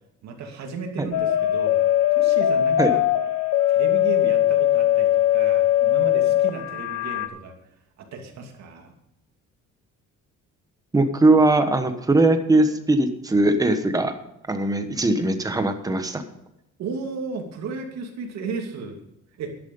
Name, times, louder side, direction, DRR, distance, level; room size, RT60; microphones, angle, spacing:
voice 1, 0.2-1.8 2.1-3.0 3.7-7.5 8.0-8.9 16.8-19.0 19.4-19.5, right 4 dB, 60° right, 3 dB, 2.6 m, -34 dB
sound 1, 1.1-7.3, left 12 dB, 70° left, 1.2 m, -20 dB
voice 2, 10.9-14.1 14.5-16.2, right 2 dB, 10° right, 7 dB, 1.1 m, -20 dB
12.5 x 10.5 x 5.5 m, 0.84 s
cardioid pair, 175°, 31 cm